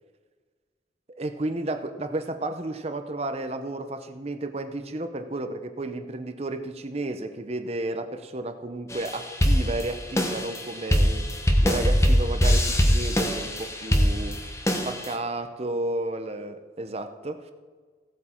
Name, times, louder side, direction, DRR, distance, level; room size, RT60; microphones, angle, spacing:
voice 1, 1.2-11.3 11.6-14.4 14.8-17.5, right 2 dB, 35° right, 8 dB, 0.7 m, -32 dB
sound 1, 8.9-15.1, equal, 15° left, 1.0 m, -23 dB
16.0 x 8.1 x 4.5 m, 1.5 s
head